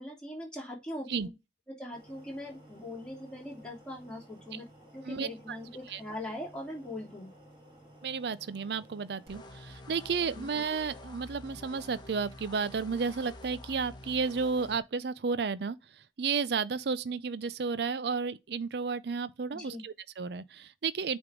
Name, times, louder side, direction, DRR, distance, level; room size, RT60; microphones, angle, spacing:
voice 1, 0.0-1.3 1.7-4.7 4.9-7.3 10.3-10.5 19.5-19.8, left 1 dB, 5° left, 3.0 m, -41 dB
sound 1, 1.9-9.4, right 1 dB, 30° right, 3.3 m, -55 dB
voice 2, 5.1-5.6 5.9-6.0 8.0-15.8 16.2-21.2, right 5 dB, 65° right, 0.5 m, -32 dB
sound 2, 9.3-14.8, left 1 dB, 25° left, 1.1 m, -48 dB
9.0 x 3.6 x 3.7 m
head